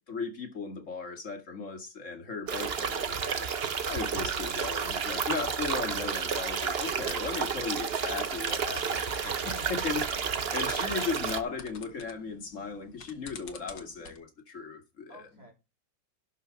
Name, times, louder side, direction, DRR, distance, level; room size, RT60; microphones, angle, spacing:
voice 1, 0.0-3.5 3.9-10.0 10.5-15.3, left 5 dB, 45° left, 2.5 m, -37 dB
voice 2, 2.4-2.8 6.5-6.8 9.4-9.8 10.8-11.4 15.1-15.5, equal, 25° right, 3.6 m, -54 dB
sound 1, 2.5-11.4, right 6 dB, 40° right, 1.0 m, -31 dB
sound 2, 6.8-7.4 8.3-14.2, left 6 dB, 75° left, 2.1 m, -49 dB
12.0 x 5.5 x 6.4 m
omnidirectional pair, 1.9 m